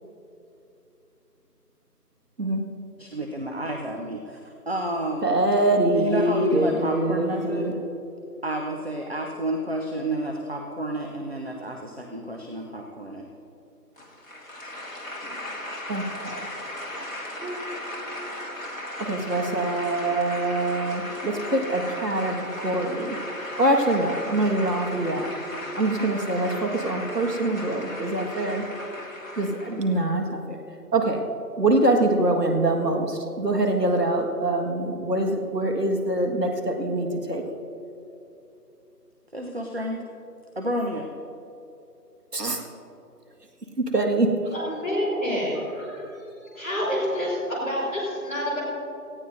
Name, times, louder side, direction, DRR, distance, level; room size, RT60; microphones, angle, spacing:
voice 1, 3.0-5.3 5.9-7.8 8.4-13.2 39.3-40.0 40.6-41.1, right 1 dB, 40° right, 2 dB, 0.8 m, -30 dB
voice 2, 5.2-7.7 15.9-16.5 17.4-17.6 19.0-23.2 23.6-25.3 25.8-28.6 29.4-30.6 30.9-31.2 31.6-37.4 42.3-42.6 43.8-44.5, right 1 dB, 75° right, 3 dB, 1.9 m, -24 dB
sound 1, 14.0-30.0, left 1 dB, 55° left, 1.9 m, -36 dB
voice 3, 44.5-46.0 46.4-48.6, equal, 10° left, -15 dB, 2.7 m, -28 dB
18.0 x 15.5 x 2.7 m, 2.8 s
figure-of-eight pair, 175°, 48 cm